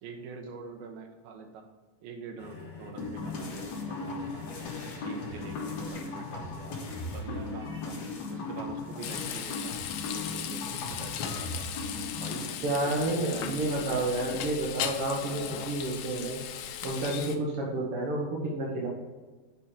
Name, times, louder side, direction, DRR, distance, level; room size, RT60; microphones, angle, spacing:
voice 1, 0.0-1.7 2.0-4.5 4.8-8.0 8.3-11.7 12.2-14.2, right 5 dB, 80° right, 5 dB, 2.8 m, -45 dB
sound 1, 2.4-12.6 13.5-13.6, left 2 dB, 30° left, 1.8 m, -49 dB
sound 2, 3.0-12.5, left 3 dB, 60° left, 2.7 m, -37 dB
Frying (food), 9.0-17.4, left 9 dB, 80° left, 2.6 m, -37 dB
voice 2, 12.6-16.4 16.8-18.9, right 2 dB, 65° right, -3 dB, 1.5 m, -30 dB
8.2 x 5.8 x 4.8 m, 1.3 s
omnidirectional pair, 4.3 m